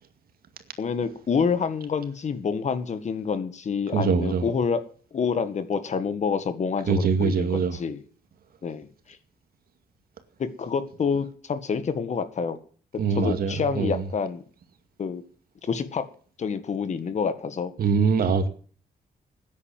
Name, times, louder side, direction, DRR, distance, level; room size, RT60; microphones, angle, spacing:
voice 1, 0.8-4.8 5.1-8.0 8.6-8.9 10.4-12.6 13.1-14.4 15.0-15.2 15.6-16.0 16.4-17.7, left 6 dB, 45° left, 1.8 m, -27 dB
voice 2, 3.9-4.4 6.9-7.8 13.0-14.0 17.8-18.5, right 5 dB, 70° right, 2.3 m, -23 dB
14.0 x 10.0 x 7.5 m
wide cardioid pair, 140°, 16 cm